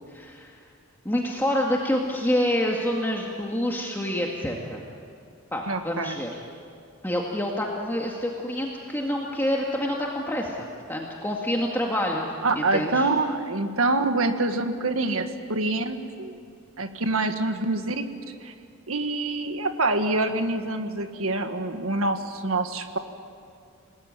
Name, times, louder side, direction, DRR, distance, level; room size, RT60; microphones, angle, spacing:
voice 1, 0.1-0.5 1.0-4.8 5.5-6.3 7.0-10.6 10.9-12.3 12.6-13.1, left 1 dB, 10° left, -1 dB, 2.0 m, -27 dB
voice 2, 5.7-6.2 12.4-16.4 16.8-18.0 18.4-18.5 18.9-23.0, right 2 dB, 80° right, 7 dB, 1.7 m, -26 dB
28.0 x 19.5 x 9.1 m, 2.4 s
head